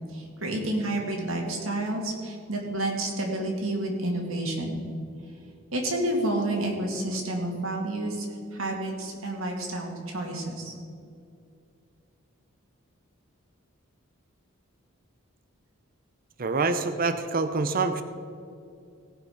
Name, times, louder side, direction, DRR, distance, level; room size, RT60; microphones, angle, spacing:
voice 1, 0.1-4.8 5.7-8.3 8.5-10.7, right 1 dB, 70° right, 1 dB, 2.3 m, -30 dB
voice 2, 16.4-18.0, right 3 dB, 45° right, 10 dB, 0.6 m, -26 dB
17.5 x 6.0 x 5.8 m, 2.4 s
head